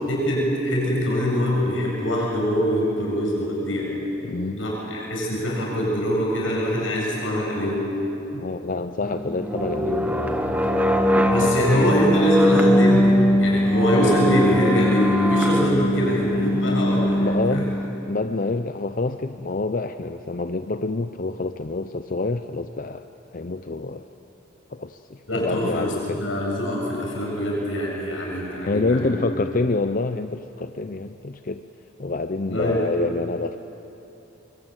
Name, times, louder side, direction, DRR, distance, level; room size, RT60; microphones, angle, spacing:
voice 1, 0.1-4.0 4.5-7.8 11.3-17.7 25.3-29.2 32.5-32.8, equal, 75° left, -3 dB, 7.7 m, -24 dB
voice 2, 4.2-4.6 8.3-10.6 11.1-12.0 17.2-17.7 18.1-23.1 23.3-24.1 24.7-26.2 28.5-31.6 32.0-33.6, left 3 dB, 45° left, 9 dB, 0.6 m, -27 dB
sound 1, 9.0-17.8, equal, 10° right, 1.3 m, -21 dB
25.0 x 23.5 x 9.0 m, 2.9 s
head